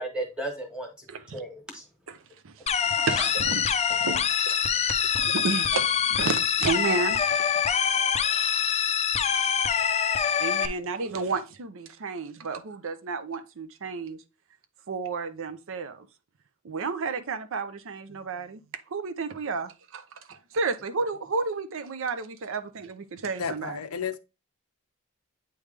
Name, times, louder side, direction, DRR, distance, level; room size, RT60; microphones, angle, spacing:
voice 1, 0.0-1.0 1.3-1.8 2.9-3.3, right 1 dB, 5° right, 1.5 m, -35 dB
voice 2, 1.1-1.4 2.1-2.2 2.4-2.7 3.0-3.6 4.0-7.4 9.8-9.9 10.4-14.2 14.9-16.1 16.6-23.8, right 4 dB, 65° right, 0.6 m, -32 dB
sound 1, 2.7-10.7, left 7 dB, 30° left, 0.4 m, -25 dB
voice 3, 23.4-24.2, left 7 dB, 85° left, 0.5 m, -32 dB
8.5 x 3.4 x 3.3 m
head